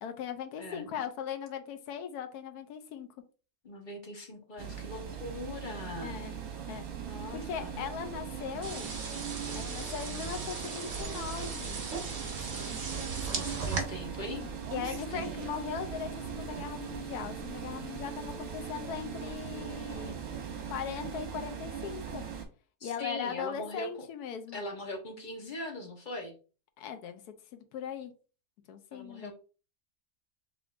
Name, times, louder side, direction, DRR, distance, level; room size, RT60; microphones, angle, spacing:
voice 1, 0.0-3.1 6.0-6.3 6.7-6.8 7.3-8.9 9.5-11.8 14.4-20.2 20.7-22.2 22.8-24.6 26.8-27.2 27.5-28.1 28.7-29.3, left 8 dB, 85° left, 7 dB, 1.2 m, -39 dB
voice 2, 0.6-1.0 3.6-6.2 7.0-7.8 13.3-14.4 14.9-15.3 22.8-23.9 24.5-26.4 28.9-29.3, left 1 dB, 35° left, 1 dB, 1.1 m, -41 dB
sound 1, 4.6-22.5, right 7 dB, 70° right, 1.4 m, -40 dB
sound 2, 8.6-13.8, right 4 dB, 50° right, 1.2 m, -38 dB
4.8 x 3.6 x 2.5 m, 0.36 s
omnidirectional pair, 1.6 m